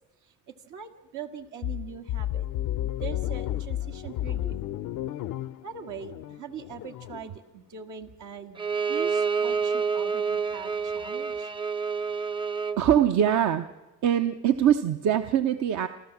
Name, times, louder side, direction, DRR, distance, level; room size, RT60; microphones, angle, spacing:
voice 1, 0.5-2.5 3.0-4.6 5.6-11.5, right 7 dB, 85° right, 4 dB, 1.9 m, -41 dB
sound 1, 1.6-7.3, left 13 dB, 85° left, 0.7 m, -32 dB
Bowed string instrument, 8.6-12.8, right 5 dB, 15° right, 0.6 m, -28 dB
voice 2, 12.8-13.7 14.0-15.9, right 9 dB, 70° right, 8 dB, 0.9 m, -22 dB
28.0 x 13.0 x 7.2 m, 1.2 s
cardioid pair, 90°, 30 cm